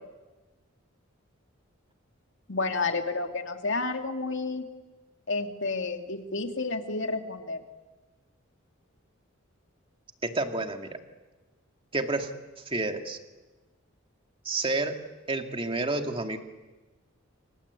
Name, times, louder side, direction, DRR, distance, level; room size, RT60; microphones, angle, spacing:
voice 1, 2.5-4.6 5.3-7.6, left 3 dB, 60° left, 5 dB, 2.5 m, -30 dB
voice 2, 10.2-11.0 11.9-12.3 12.6-13.2 14.4-15.0 15.3-16.4, right 2 dB, 25° right, 5 dB, 2.2 m, -29 dB
28.0 x 25.5 x 8.4 m, 1.2 s
head